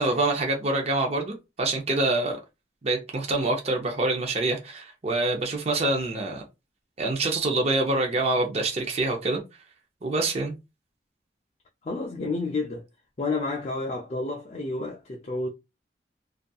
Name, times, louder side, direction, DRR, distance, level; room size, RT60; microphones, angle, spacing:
voice 1, 0.0-2.4 2.8-6.4 7.0-9.4 10.0-10.5, right 2 dB, 35° right, 0.5 m, -26 dB
voice 2, 11.8-12.9 13.2-15.5, left 3 dB, 35° left, 0.4 m, -30 dB
2.6 x 2.3 x 2.2 m
head